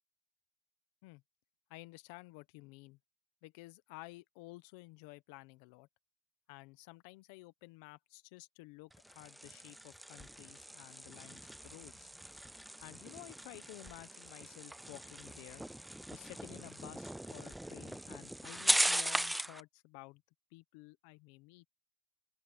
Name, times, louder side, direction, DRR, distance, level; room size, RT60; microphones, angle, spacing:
voice 1, 1.7-3.0 3.4-5.9 6.5-12.1 12.8-15.6 16.1-20.2 20.5-21.6, left 22 dB, 85° left, 1.0 m, -53 dB
sound 1, 8.9-19.6, right 1 dB, 5° right, 0.3 m, -39 dB
open air
cardioid pair, 140°, 0 cm